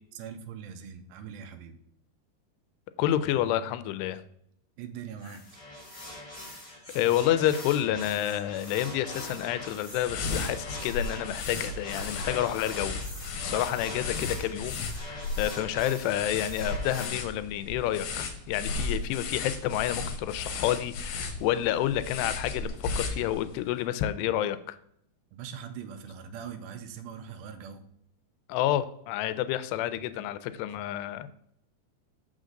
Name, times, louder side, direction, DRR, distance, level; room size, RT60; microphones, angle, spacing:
voice 1, 0.2-1.8 4.8-5.5 25.3-27.8, right 7 dB, 80° right, 7 dB, 2.2 m, -41 dB
voice 2, 3.0-4.2 6.9-13.0 13.4-24.8 28.5-31.3, left 12 dB, 90° left, 13 dB, 2.7 m, -29 dB
sound 1, 5.2-17.1, left 1 dB, 40° left, 0.4 m, -42 dB
sound 2, 9.9-23.6, left 3 dB, 70° left, 2.7 m, -35 dB
6.4 x 6.1 x 3.8 m, 0.71 s
omnidirectional pair, 4.8 m